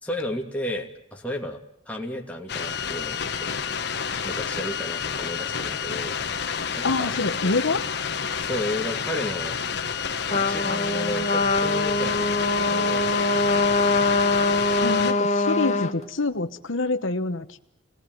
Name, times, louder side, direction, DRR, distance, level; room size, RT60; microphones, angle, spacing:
voice 1, 0.0-3.5 4.2-6.2 6.8-7.1 8.4-9.6 10.4-12.3 12.6-13.5, left 1 dB, 5° left, 0 dB, 2.6 m, -33 dB
sound 1, 2.5-15.1, left 6 dB, 55° left, 1.4 m, -29 dB
voice 2, 6.8-7.8 14.8-17.6, left 3 dB, 70° left, 9 dB, 1.2 m, -26 dB
Trumpet, 10.3-15.9, left 3 dB, 35° left, 1.5 m, -23 dB
28.0 x 19.0 x 9.4 m, 0.76 s
head